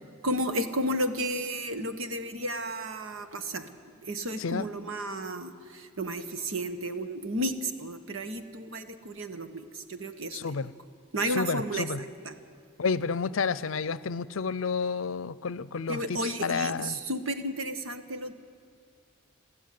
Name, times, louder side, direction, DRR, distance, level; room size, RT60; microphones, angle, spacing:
voice 1, 0.2-3.7 4.0-10.5 11.1-12.3 15.9-18.3, right 1 dB, 80° right, 9 dB, 1.3 m, -33 dB
voice 2, 10.3-10.7 11.4-12.0 12.8-17.0, left 5 dB, 75° left, 19 dB, 0.6 m, -30 dB
22.0 x 14.5 x 9.4 m, 2.3 s
head